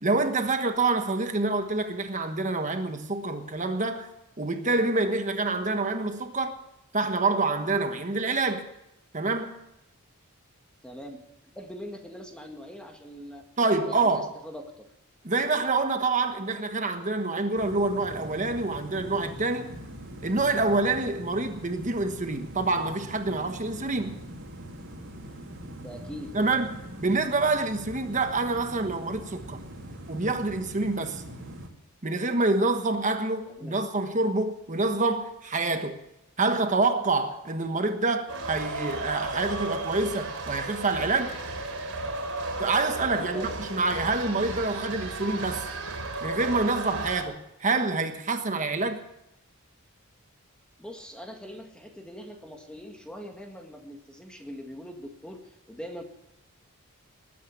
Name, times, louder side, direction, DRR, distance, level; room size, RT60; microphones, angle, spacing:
voice 1, 0.0-4.1 4.4-6.5 6.9-8.7 9.1-9.6 13.6-14.3 15.2-19.7 20.2-24.2 26.3-29.6 30.1-31.2 32.0-36.0 36.4-41.4 42.6-45.7 46.2-49.0, right 3 dB, 35° right, 1.3 m, -27 dB
voice 2, 10.8-13.5 13.8-14.9 25.8-26.3 33.5-33.8 43.1-43.6 50.8-56.0, equal, 5° left, 1.8 m, -42 dB
sound 1, 17.5-31.7, right 1 dB, 60° right, 2.9 m, -42 dB
sound 2, 38.3-47.2, right 2 dB, 80° right, 3.5 m, -34 dB
20.0 x 9.4 x 7.1 m
head